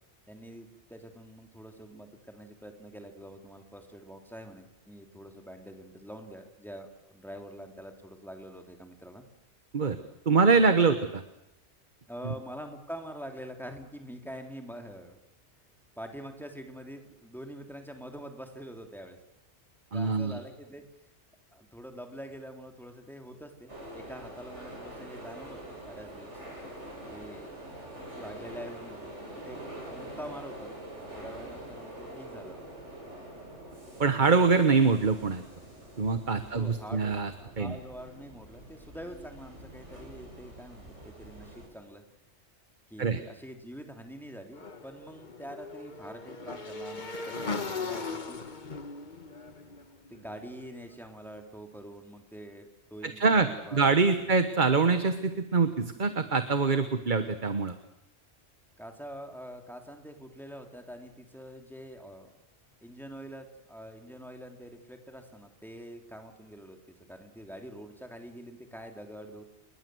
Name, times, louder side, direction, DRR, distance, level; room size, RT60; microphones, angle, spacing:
voice 1, 0.3-9.2 12.1-15.2 15.9-19.2 19.9-20.8 21.5-26.4 27.1-27.6 28.1-30.8 31.1-32.6 36.5-42.0 42.9-48.4 50.1-54.3 58.8-62.3 62.8-69.4, equal, ahead, 4 dB, 3.5 m, -45 dB
voice 2, 10.3-11.2 12.2-12.3 19.9-20.4 34.0-35.4 36.0-37.3 37.6-37.7 43.0-43.2 53.0-57.7, right 4 dB, 45° right, 9 dB, 1.4 m, -24 dB
sound 1, 23.7-41.7, right 1 dB, 85° right, 7.9 m, -45 dB
Motorcycle / Engine, 44.5-50.7, left 4 dB, 40° left, 1.6 m, -38 dB
29.5 x 21.0 x 7.9 m, 0.90 s
omnidirectional pair, 1.2 m